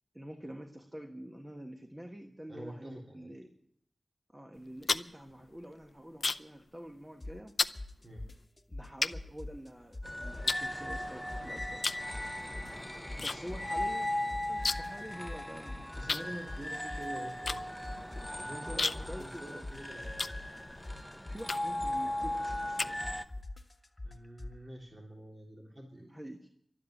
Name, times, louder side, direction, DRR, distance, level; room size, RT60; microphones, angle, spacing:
voice 1, 0.1-3.5 4.3-7.6 8.7-11.9 13.2-14.1 14.5-15.9 18.7-19.7 21.3-23.0 26.1-26.5, equal, 15° right, 4 dB, 1.4 m, -47 dB
voice 2, 2.5-3.3 8.0-8.2 13.1-13.5 15.1-15.2 15.9-17.8 18.4-20.5 24.0-26.1, right 1 dB, 35° right, -2 dB, 3.4 m, -47 dB
sound 1, 4.5-6.6 6.9-7.2 7.6-7.8 8.4-8.5 9.0-10.0 10.5-11.3 11.8-12.1 12.4-13.4 13.6-13.7 14.0-15.0 15.3-15.4 16.1-20.9 21.4-21.9 22.3-23.4, left 3 dB, 65° left, 0.5 m, -35 dB
sound 2, 7.2-7.5 7.8-9.7 9.9-11.9 12.1-14.0 14.3-18.4 18.7-24.6, left 2 dB, 30° left, 1.4 m, -43 dB
sound 3, 10.0-23.2, left 1 dB, 5° left, 0.8 m, -38 dB
12.5 x 9.8 x 10.0 m, 0.72 s
wide cardioid pair, 70°, 0 cm